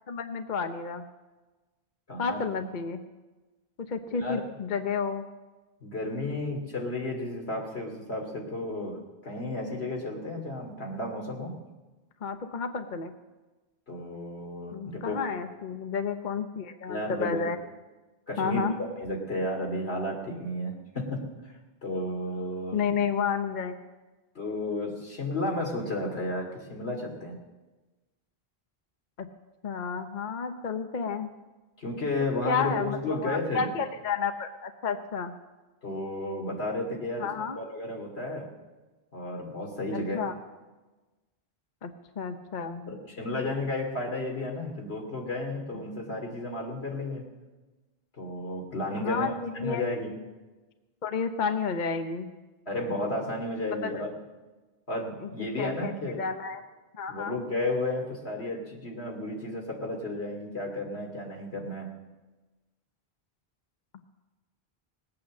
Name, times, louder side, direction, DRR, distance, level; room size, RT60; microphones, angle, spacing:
voice 1, 0.1-1.1 2.2-3.0 3.8-5.3 12.2-13.1 14.7-17.6 18.4-18.8 22.7-23.8 29.2-29.3 29.6-31.3 32.4-35.4 37.2-37.6 39.9-40.3 41.8-43.0 49.0-49.9 51.0-52.3 53.8-53.9 55.2-55.3 55.6-56.6 56.9-57.4, left 5 dB, 50° left, 8 dB, 0.9 m, -31 dB
voice 2, 2.1-2.4 4.2-4.4 5.8-9.0 9.2-11.6 13.9-15.2 16.9-17.5 18.3-18.6 19.0-21.5 21.8-22.8 24.3-27.4 31.8-33.7 35.8-38.5 39.1-40.2 42.9-47.2 48.2-50.1 52.7-54.1 54.9-56.2 57.1-61.9, left 1 dB, 85° left, 1 dB, 3.0 m, -33 dB
19.5 x 8.8 x 7.4 m, 1.2 s
omnidirectional pair, 1.0 m